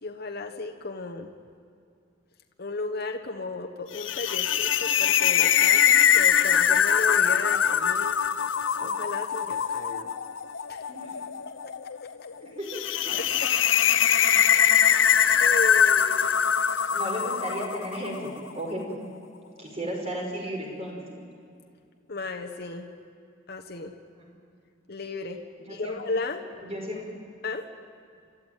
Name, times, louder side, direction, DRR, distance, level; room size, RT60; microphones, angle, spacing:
voice 1, 0.0-1.3 2.6-8.2 8.8-10.1 10.7-10.8 11.4-11.5 13.1-13.5 14.7-15.1 15.4-16.2 22.1-22.9 23.5-23.9 24.9-25.4 25.7-26.4 27.4-27.6, left 3 dB, 55° left, 3 dB, 1.3 m, -35 dB
sound 1, 3.9-18.3, left 8 dB, 90° left, 0.7 m, -23 dB
voice 2, 10.9-11.2 12.4-13.2 16.9-18.8 19.6-21.1 24.2-24.3 25.6-25.9 26.6-27.0, equal, 35° right, 0 dB, 5.5 m, -34 dB
29.5 x 13.5 x 9.2 m, 2.3 s
head